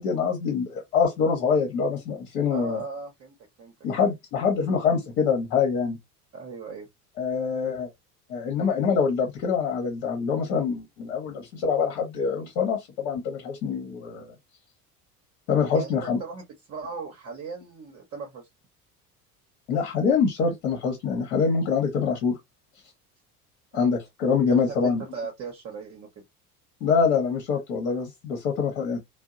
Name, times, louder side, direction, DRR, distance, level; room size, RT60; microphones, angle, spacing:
voice 1, 0.0-2.8 3.8-6.0 7.2-7.9 8.3-14.3 15.5-16.2 19.7-22.4 23.7-25.0 26.8-29.0, left 5 dB, 55° left, 1.0 m, -25 dB
voice 2, 2.5-3.7 6.3-6.9 15.7-18.5 23.7-23.9 24.7-26.1, right 4 dB, 30° right, 0.8 m, -38 dB
2.7 x 2.0 x 2.4 m
figure-of-eight pair, 65°, 46 cm